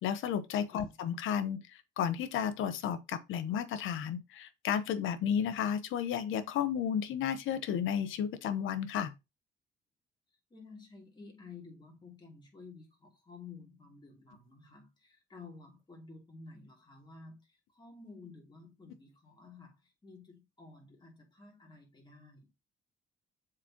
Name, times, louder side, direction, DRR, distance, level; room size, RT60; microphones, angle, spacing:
voice 1, 0.0-9.1, left 8 dB, 85° left, 0.9 m, -33 dB
voice 2, 10.5-22.5, left 4 dB, 25° left, 2.8 m, -52 dB
7.4 x 4.8 x 2.9 m
cardioid pair, 90°, 20 cm